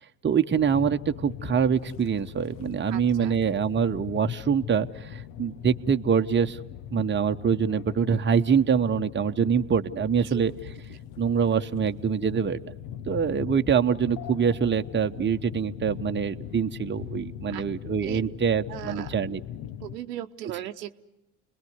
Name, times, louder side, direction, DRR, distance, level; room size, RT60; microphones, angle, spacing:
voice 1, 0.2-6.6 6.9-10.5 11.2-12.6 13.1-19.4, right 7 dB, 20° right, 7 dB, 1.1 m, -25 dB
sound 1, 0.5-20.0, left 10 dB, 60° left, 1.2 m, -40 dB
voice 2, 2.9-3.3 10.2-10.4 17.5-17.6 18.0-18.2 18.7-19.1 19.8-20.9, right 12 dB, 80° right, 8 dB, 1.0 m, -37 dB
30.0 x 21.0 x 9.6 m, 0.95 s
hypercardioid pair, 60°, 48 cm